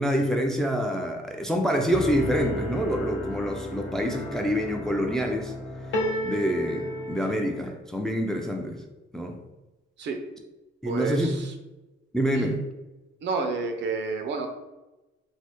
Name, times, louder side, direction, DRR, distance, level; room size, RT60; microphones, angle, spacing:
voice 1, 0.0-5.5 6.2-8.8 9.1-9.4 10.8-11.4 12.1-12.6, equal, ahead, 2 dB, 0.4 m, -26 dB
sound 1, 1.9-7.7, left 1 dB, 65° left, 0.6 m, -33 dB
voice 2, 10.9-11.3 12.3-12.6 13.2-14.5, right 4 dB, 65° right, 5 dB, 0.5 m, -29 dB
3.2 x 2.0 x 2.9 m, 1.1 s
cardioid pair, 90°, 20 cm